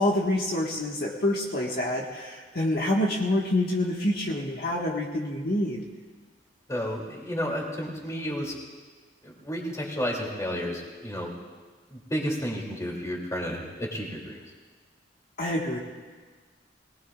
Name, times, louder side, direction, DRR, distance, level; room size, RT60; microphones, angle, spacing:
voice 1, 0.0-5.8 15.4-15.8, left 1 dB, 55° left, -2 dB, 1.6 m, -27 dB
voice 2, 6.7-8.5 9.2-11.3 11.9-14.4, equal, 20° left, -1 dB, 2.8 m, -32 dB
23.0 x 19.0 x 2.5 m, 1.4 s
head